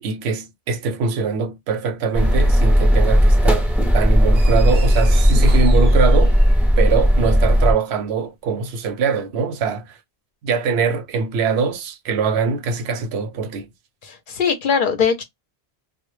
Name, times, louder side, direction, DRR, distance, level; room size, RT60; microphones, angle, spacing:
voice 1, 0.0-3.7 3.9-6.4 6.8-10.0 10.4-13.7, right 5 dB, 80° right, 0.8 m, -23 dB
sound 1, 2.1-7.7, equal, 5° right, 0.3 m, -15 dB
sound 2, 4.3-6.8, right 5 dB, 55° right, 0.6 m, -38 dB
voice 2, 14.0-15.2, left 6 dB, 60° left, 0.6 m, -20 dB
2.1 x 2.0 x 3.0 m
omnidirectional pair, 1.1 m